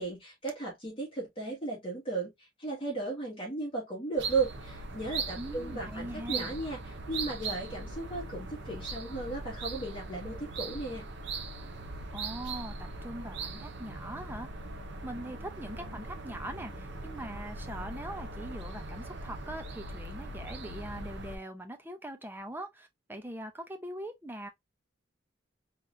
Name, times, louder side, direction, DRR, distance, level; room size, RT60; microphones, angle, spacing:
voice 1, 0.0-11.1, right 3 dB, 30° left, 1.6 m, -35 dB
sound 1, 4.2-21.4, right 3 dB, 65° right, 0.8 m, -40 dB
voice 2, 5.4-6.6 12.1-14.5 15.0-24.5, right 1 dB, 10° right, 0.7 m, -42 dB
3.7 x 3.2 x 2.7 m
head